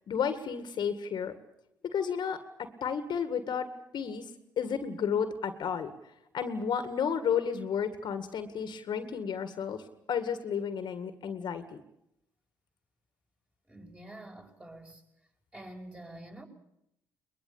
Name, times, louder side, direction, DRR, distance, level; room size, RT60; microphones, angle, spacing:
voice 1, 0.1-1.3 1.8-3.7 3.9-4.3 4.6-5.9 6.3-9.8 10.1-11.6, left 7 dB, 55° left, 2.0 m, -32 dB
voice 2, 13.7-15.0 15.5-16.5, right 1 dB, 15° right, 5.8 m, -47 dB
22.0 x 21.0 x 8.7 m
hypercardioid pair, 55°, 9 cm